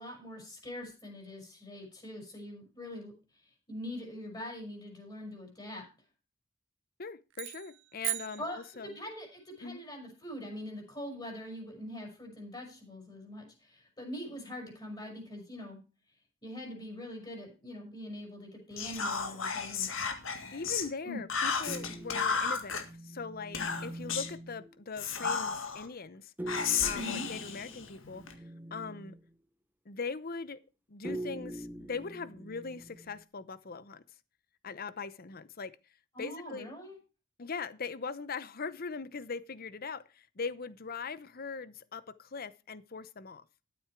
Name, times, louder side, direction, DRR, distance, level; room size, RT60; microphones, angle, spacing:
voice 1, 0.0-3.1 3.7-5.8 8.4-15.8 16.4-19.9 21.0-21.2 26.9-27.3 36.1-37.0, left 1 dB, 20° left, 4.8 m, -43 dB
voice 2, 7.0-9.0 9.6-9.8 20.5-26.3 26.8-28.2 28.7-29.1 29.9-30.6 30.9-34.0 34.6-35.8 36.2-36.7 37.4-43.4, left 4 dB, 45° left, 0.8 m, -41 dB
sound 1, 7.3-9.2, right 21 dB, 60° right, 0.5 m, -39 dB
Whispering, 18.8-20.9 21.3-22.8 23.5-24.4 25.0-25.9 26.5-28.3, left 6 dB, 65° left, 1.8 m, -33 dB
sound 2, 21.7-24.8 26.4-29.3 31.0-33.2, right 1 dB, 10° right, 0.7 m, -44 dB
12.5 x 7.8 x 4.6 m
head